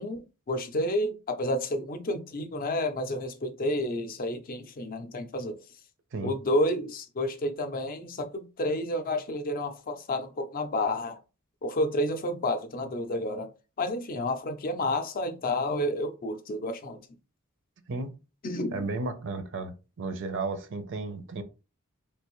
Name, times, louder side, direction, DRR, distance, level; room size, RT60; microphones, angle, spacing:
voice 1, 0.0-5.6 6.2-11.2 11.6-13.5 13.8-17.0 18.4-18.9, left 1 dB, 40° left, 0.5 m, -30 dB
voice 2, 18.7-21.4, right 3 dB, 60° right, 0.6 m, -34 dB
3.3 x 2.6 x 3.0 m
head